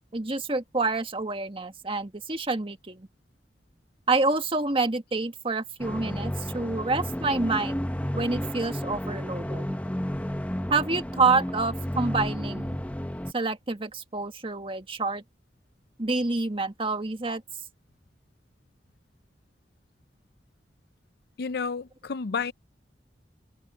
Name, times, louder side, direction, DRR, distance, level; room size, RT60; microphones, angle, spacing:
voice 1, 0.1-3.1 4.1-7.8 8.1-9.6 10.7-12.8 13.3-15.2 16.0-17.4, right 3 dB, 30° right, 1.6 m, -27 dB
sound 1, 5.8-13.3, equal, 10° left, 1.0 m, -32 dB
voice 2, 21.4-22.5, left 5 dB, 60° left, 0.5 m, -30 dB
head